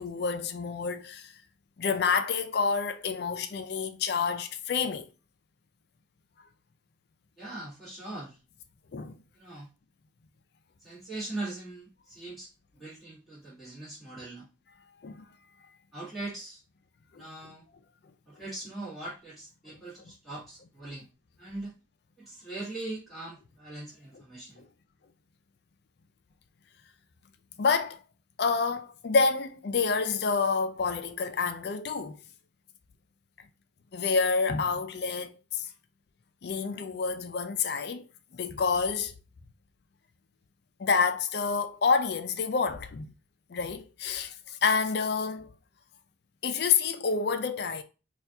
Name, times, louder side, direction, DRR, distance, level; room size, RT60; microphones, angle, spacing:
voice 1, 0.0-1.3 1.8-5.1 8.9-9.2 15.0-15.2 17.1-17.2 27.6-28.0 28.4-32.2 33.9-35.7 36.4-38.0 38.3-39.1 40.8-43.1 43.5-45.5 46.4-47.8, left 5 dB, 55° left, 0.4 m, -28 dB
voice 2, 7.4-8.4 9.3-9.7 10.8-14.5 15.9-16.6 17.2-17.7 18.2-21.1 21.4-21.7 22.2-24.6, right 2 dB, ahead, 1.5 m, -41 dB
4.3 x 2.4 x 2.7 m
head